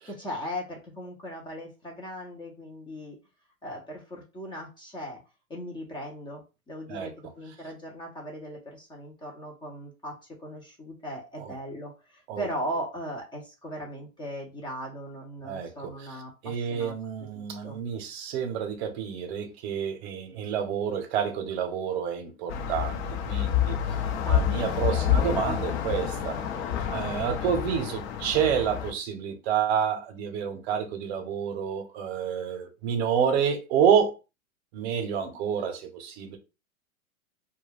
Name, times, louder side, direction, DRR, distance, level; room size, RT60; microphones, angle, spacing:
voice 1, 0.0-3.2 3.6-5.2 5.5-16.9 17.3-17.8 24.2-24.7, equal, 10° left, 0.5 m, -38 dB
voice 2, 16.4-23.8 24.2-26.4 26.9-34.1 34.7-36.4, right 8 dB, 50° right, 0.8 m, -28 dB
sound 1, 22.5-28.9, left 9 dB, 50° left, 0.6 m, -28 dB
2.2 x 2.2 x 3.3 m
hypercardioid pair, 115°, 42 cm